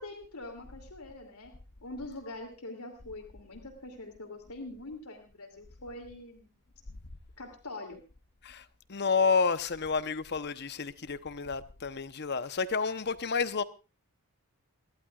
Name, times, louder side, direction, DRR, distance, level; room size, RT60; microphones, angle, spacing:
voice 1, 0.0-1.5 1.8-6.5 7.4-8.0, left 2 dB, 85° left, 2.8 m, -44 dB
voice 2, 8.4-13.6, left 5 dB, 50° left, 0.8 m, -30 dB
29.0 x 12.0 x 2.4 m
head